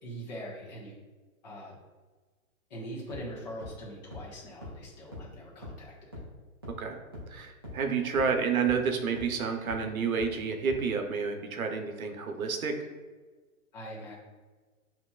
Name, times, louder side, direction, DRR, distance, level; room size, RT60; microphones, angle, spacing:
voice 1, 0.0-0.9 1.4-1.8 2.7-6.1 8.0-8.1 13.7-14.2, equal, 30° left, -5 dB, 1.3 m, -42 dB
sound 1, 3.1-3.2 3.6-3.7 4.1-4.2 4.6-4.7 5.1-5.2 5.6-5.7 6.1-6.2 6.6-6.7 7.1-7.2 7.6-7.7 8.1-8.2 8.6-8.7 9.2-9.3 9.7-9.8 10.2-10.3 10.7-10.8, left 2 dB, 20° right, 0.4 m, -41 dB
voice 2, 7.3-12.8, right 5 dB, 75° right, 5 dB, 0.9 m, -30 dB
7.4 x 2.9 x 2.4 m, 1.3 s
hypercardioid pair, 170°, 42 cm